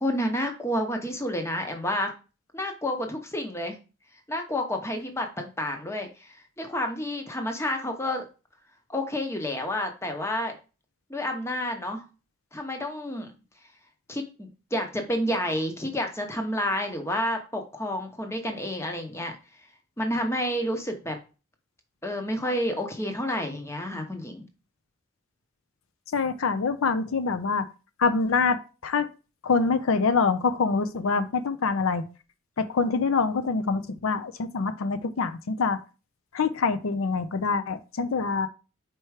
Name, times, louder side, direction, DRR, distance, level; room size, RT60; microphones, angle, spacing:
voice 1, 0.0-2.1 2.5-3.8 4.3-8.3 8.9-10.5 11.1-12.0 12.5-13.3 14.1-19.7 20.0-21.2 22.0-24.4, left 1 dB, 15° left, 4 dB, 0.8 m, -30 dB
voice 2, 26.1-27.7 28.0-29.1 29.4-32.0 32.6-35.8 36.3-38.5, left 4 dB, 75° left, 12 dB, 0.5 m, -25 dB
4.6 x 4.4 x 4.7 m, 0.33 s
head